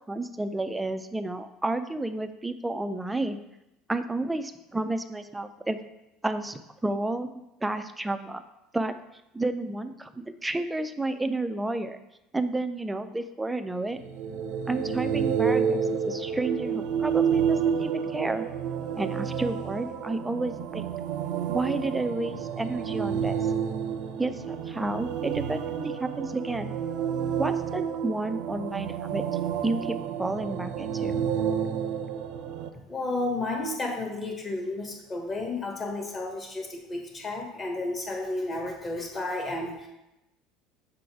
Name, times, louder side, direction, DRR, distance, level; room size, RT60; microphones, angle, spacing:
voice 1, 0.1-3.4 3.9-5.8 6.2-7.3 7.6-8.4 8.7-8.9 9.3-12.0 12.3-14.0 14.7-18.5 19.0-20.9 21.5-23.5 24.2-26.7 27.4-29.2 29.6-31.1, right 2 dB, 5° right, 9 dB, 0.4 m, -31 dB
sound 1, 13.9-32.7, right 7 dB, 75° right, 0.6 m, -30 dB
voice 2, 32.9-39.9, left 2 dB, 25° left, 2 dB, 1.2 m, -32 dB
6.7 x 3.9 x 4.7 m, 0.90 s
cardioid pair, 145°, 0 cm